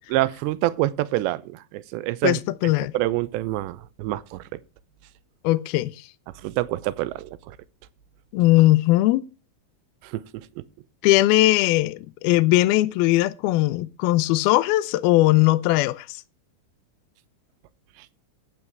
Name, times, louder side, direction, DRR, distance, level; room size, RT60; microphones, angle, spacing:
voice 1, 0.1-4.6 6.4-7.6 10.1-10.6, right 15 dB, 80° right, 2.9 m, -27 dB
voice 2, 2.2-2.9 5.4-5.9 8.3-9.2 11.0-16.1, left 17 dB, 80° left, 2.3 m, -19 dB
12.5 x 9.0 x 4.6 m
omnidirectional pair, 5.1 m